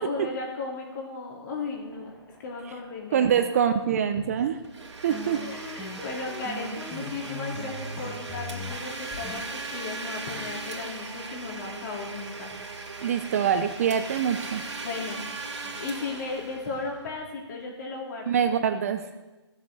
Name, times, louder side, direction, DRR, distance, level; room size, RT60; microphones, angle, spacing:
voice 1, 0.0-2.1 2.4-3.6 4.1-4.2 5.4-12.5 14.8-15.2 15.6-18.4, left 3 dB, 40° left, -1 dB, 3.5 m, -36 dB
sound 1, 1.6-4.7 5.1-9.4, left 1 dB, 5° left, 1.3 m, -40 dB
voice 2, 3.1-4.6 5.0-5.4 13.0-14.6 18.3-19.0, right 8 dB, 30° right, 8 dB, 0.6 m, -24 dB
Domestic sounds home sounds, 4.6-17.2, right 3 dB, 85° right, 2.4 m, -38 dB
16.5 x 7.4 x 6.4 m, 1.1 s
hypercardioid pair, 165°, 15 cm